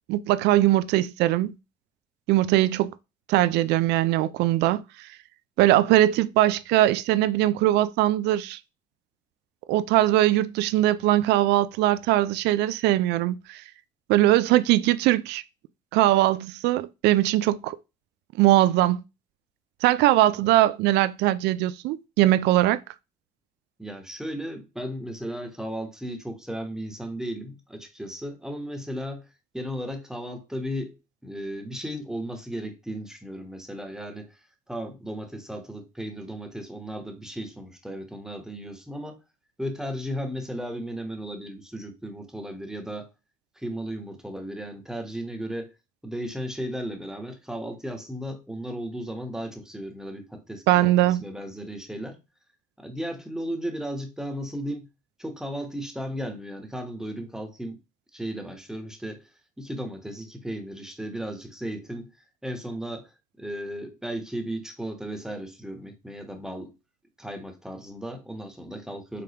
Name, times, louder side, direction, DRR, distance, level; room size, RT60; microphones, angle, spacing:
voice 1, 0.1-1.5 2.3-2.9 3.3-5.1 5.6-8.6 9.7-13.6 14.1-15.4 15.9-17.8 18.4-19.0 19.8-22.8 50.7-51.2, right 14 dB, 85° right, 0.4 m, -21 dB
voice 2, 23.8-29.3 29.5-31.0 31.2-39.2 39.6-43.1 43.6-45.7 46.0-52.2 52.8-54.9 55.2-57.8 58.1-59.3 59.6-62.1 62.4-63.1 63.4-66.7 67.2-69.2, equal, 5° right, 1.0 m, -35 dB
5.1 x 3.5 x 2.8 m
cardioid pair, 110°, 17 cm